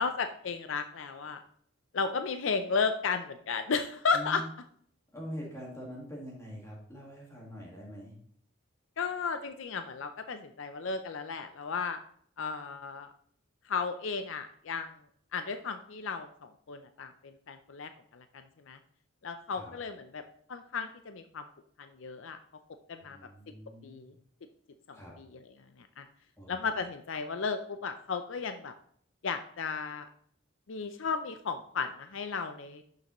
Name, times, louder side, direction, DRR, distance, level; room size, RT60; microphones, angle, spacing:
voice 1, 0.0-1.4 1.9-4.4 9.0-12.0 12.4-13.1 13.6-14.9 15.3-18.8 19.2-20.2 20.5-21.5 21.8-22.4 22.9-23.2 23.8-24.1 24.9-25.3 25.8-26.1 26.5-28.7 29.2-30.1 30.7-32.8, left 5 dB, 65° left, 8 dB, 0.5 m, -34 dB
voice 2, 4.1-4.5 5.1-8.1 19.5-19.7 23.0-24.1 24.9-25.1 26.4-26.6, equal, 15° left, -3 dB, 1.7 m, -44 dB
11.0 x 6.6 x 3.0 m, 0.63 s
head